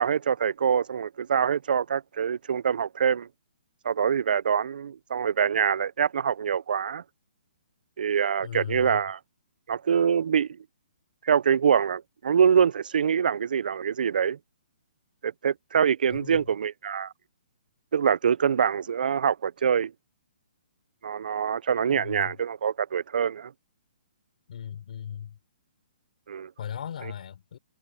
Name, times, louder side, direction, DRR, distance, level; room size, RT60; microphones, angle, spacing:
voice 1, 0.0-3.3 3.8-7.0 8.0-9.2 9.7-10.5 11.2-14.4 15.2-17.1 17.9-19.9 21.0-23.5 26.3-26.5, right 7 dB, 70° right, 0.4 m, -25 dB
voice 2, 8.4-9.0 16.1-16.5 21.9-22.4 24.5-25.4 26.6-27.6, left 9 dB, 60° left, 4.3 m, -37 dB
hypercardioid pair, 160°, 5 cm